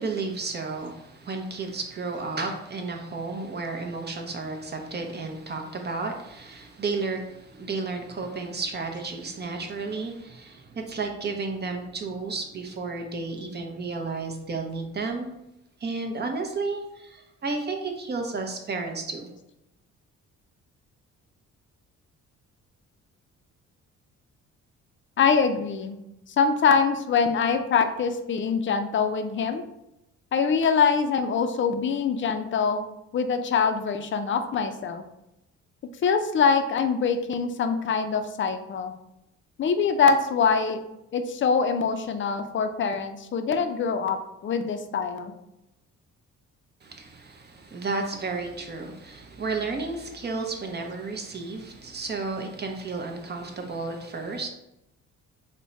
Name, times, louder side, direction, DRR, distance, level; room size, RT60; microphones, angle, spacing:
voice 1, 0.0-15.3 15.8-19.3 46.8-54.5, right 3 dB, 35° right, 3 dB, 0.7 m, -32 dB
voice 2, 25.2-26.0 26.4-29.6 30.3-32.8 33.1-35.0 36.0-38.9 39.6-40.8 41.1-45.3, left 5 dB, 40° left, 8 dB, 0.5 m, -24 dB
3.5 x 2.2 x 3.9 m, 0.86 s
cardioid pair, 90°, 30 cm